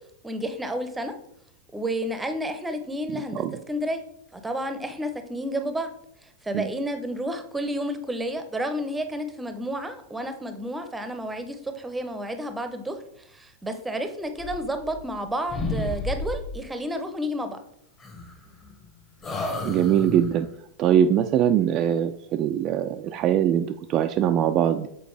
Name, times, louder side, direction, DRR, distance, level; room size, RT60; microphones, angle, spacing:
voice 1, 0.2-1.1 1.7-4.0 4.3-5.9 6.2-13.0 13.3-17.6, equal, 10° right, 8 dB, 0.7 m, -31 dB
voice 2, 3.1-3.6 6.5-6.7 19.6-20.5 20.8-24.9, right 10 dB, 35° right, 6 dB, 0.3 m, -22 dB
sound 1, 14.3-15.2 15.5-16.7 18.0-18.8 19.2-20.5, left 2 dB, 25° left, 1.1 m, -32 dB
6.8 x 4.2 x 3.2 m, 0.74 s
figure-of-eight pair, 90°, 0 cm